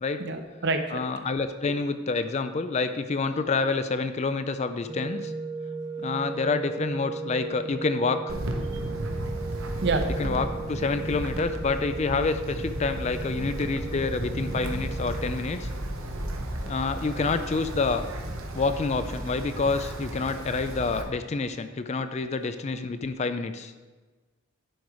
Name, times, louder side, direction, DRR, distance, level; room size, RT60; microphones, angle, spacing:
voice 1, 0.2-1.0 8.7-8.8 9.8-10.1 21.4-21.5 22.4-22.5, right 3 dB, 55° right, 6 dB, 0.8 m, -28 dB
voice 2, 0.9-5.3 6.0-8.2 10.2-15.7 16.6-18.1 18.5-23.7, left 4 dB, 30° left, 10 dB, 0.4 m, -28 dB
sound 1, 4.9-15.3, right 4 dB, 20° right, 0.8 m, -37 dB
Wind, 8.3-21.0, right 1 dB, 75° right, 1.0 m, -34 dB
10.5 x 4.7 x 4.8 m, 1.3 s
head